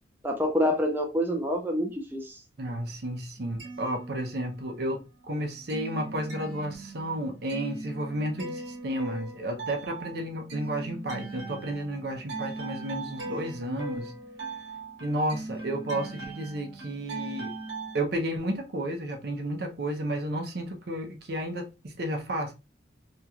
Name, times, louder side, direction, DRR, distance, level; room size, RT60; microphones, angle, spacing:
voice 1, 0.2-2.4, equal, 10° right, 0.5 m, -27 dB
voice 2, 2.6-14.1 15.0-17.5 17.9-22.5, right 1 dB, 60° right, 0.7 m, -32 dB
sound 1, 3.4-4.8 5.1-18.0, right 3 dB, 80° right, 1.0 m, -40 dB
2.9 x 2.9 x 2.4 m
head